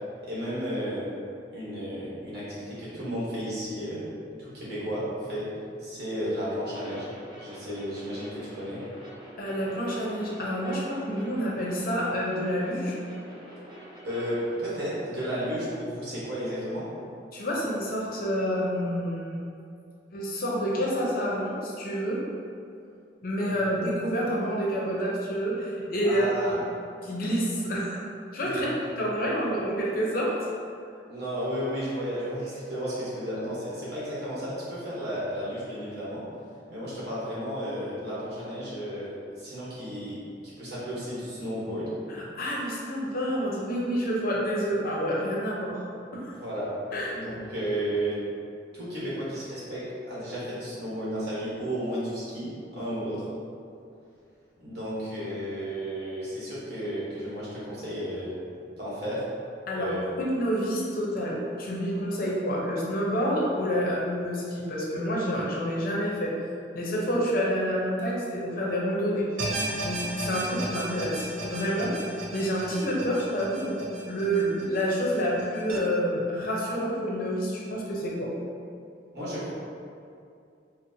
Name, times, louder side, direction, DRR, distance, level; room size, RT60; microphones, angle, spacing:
voice 1, 0.2-1.1 1.5-4.1 4.4-5.5 5.8-7.1 7.4-8.8 14.0-16.9 23.5-23.6 26.0-26.6 28.4-28.8 31.1-36.2 36.7-40.2 40.6-41.9 46.3-46.7 47.1-48.2 48.7-53.2 54.6-58.3 58.8-59.2 59.7-60.0 79.1-79.5, equal, 60° right, -9 dB, 1.2 m, -33 dB
sound 1, 6.8-14.6, right 1 dB, 25° right, 0.8 m, -45 dB
voice 2, 9.4-13.0 17.3-19.4 20.1-22.2 23.2-26.6 27.0-28.0 28.3-28.7 29.0-30.4 42.1-45.8 46.1-46.3 46.9-47.1 59.7-66.3 66.7-69.3 69.8-71.9 72.3-78.3, equal, 55° left, -4 dB, 0.6 m, -28 dB
sound 2, 69.4-75.8, right 2 dB, 85° right, 0.5 m, -35 dB
4.3 x 2.0 x 2.6 m, 2.5 s
head